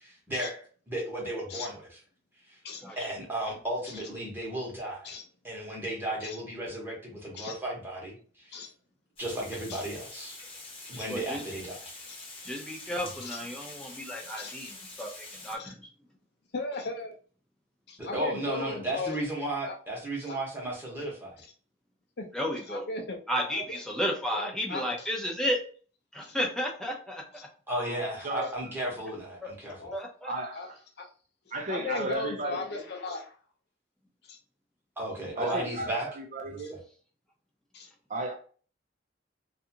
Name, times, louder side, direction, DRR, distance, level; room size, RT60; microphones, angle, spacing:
voice 1, 0.0-1.9 2.5-2.6 3.0-5.2 5.4-8.6 9.2-10.4 10.9-11.9 18.0-21.4 27.7-29.9 35.0-36.1 36.5-36.6, right 1 dB, 10° right, 1.0 m, -34 dB
Water, 9.2-15.6, left 2 dB, 30° left, 0.8 m, -45 dB
voice 2, 11.1-11.4 12.4-15.9 22.3-22.8 23.3-25.6 26.1-27.2 29.4-29.5 29.9-30.3 35.5-35.6, equal, 5° left, 0.6 m, -33 dB
voice 3, 16.5-17.1 17.9-19.2 19.6-19.8 20.3-20.4 22.2-22.3 22.7-23.2 23.5-23.6 24.3-25.1 26.2-26.4 27.4-27.5 29.8-30.0 30.5-30.7 31.0-31.1 31.5-33.4 34.3-34.4 37.7-37.9, left 3 dB, 60° left, 0.6 m, -37 dB
voice 4, 30.2-30.8 31.5-32.8 35.4-36.8 38.1-38.3, right 2 dB, 40° right, 0.5 m, -34 dB
2.7 x 2.4 x 2.7 m
head